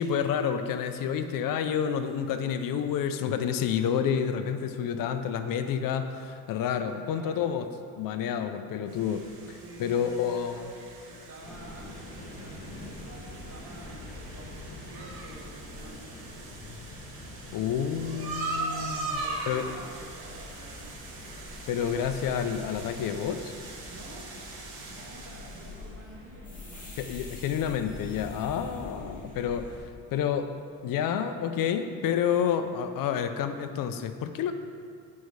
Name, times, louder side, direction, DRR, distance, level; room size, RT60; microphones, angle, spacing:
voice 1, 0.0-7.7 8.0-10.7 17.5-19.6 21.7-23.6 27.0-30.5 30.8-34.5, left 8 dB, 60° left, 9 dB, 0.5 m, -29 dB
voice 2, 6.9-7.5 9.6-16.4 19.0-21.0 23.9-26.9 28.9-29.2, right 1 dB, 40° right, -2 dB, 1.6 m, -49 dB
sound 1, 8.9-25.9, right 3 dB, 85° right, 2.1 m, -41 dB
sound 2, 11.4-29.8, left 2 dB, 20° left, 1.6 m, -45 dB
8.4 x 5.3 x 4.6 m, 2.2 s
cardioid pair, 130°, 38 cm